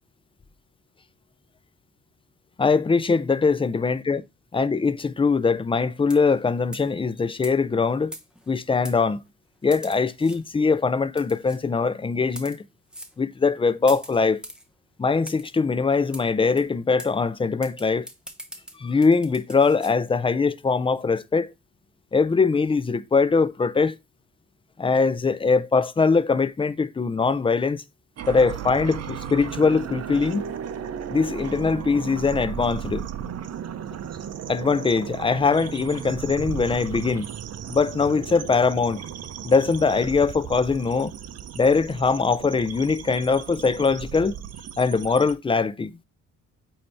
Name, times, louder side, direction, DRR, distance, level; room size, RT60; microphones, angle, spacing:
voice 1, 2.6-4.2 4.5-8.1 8.5-9.2 9.6-12.6 13.2-14.4 15.0-18.0 18.8-21.5 22.1-24.0 24.8-27.8 28.3-30.4 31.1-33.0 34.5-37.3 37.7-39.1 39.4-41.1 41.5-44.4 44.8-45.9, left 4 dB, 20° left, 0.5 m, -22 dB
sound 1, 6.1-6.4 6.7-6.9 7.4-7.5 8.1-8.5 8.8-9.0 9.7-10.4 11.2-11.6 12.2-12.6 12.9-13.1 13.9-14.6 15.3-15.5 16.1-16.2 16.6-16.7 17.0-17.1 17.6-19.9, equal, 5° right, 1.0 m, -41 dB
sound 2, 28.2-45.3, right 9 dB, 55° right, 0.7 m, -35 dB
8.4 x 2.9 x 4.4 m
cardioid pair, 90°, 30 cm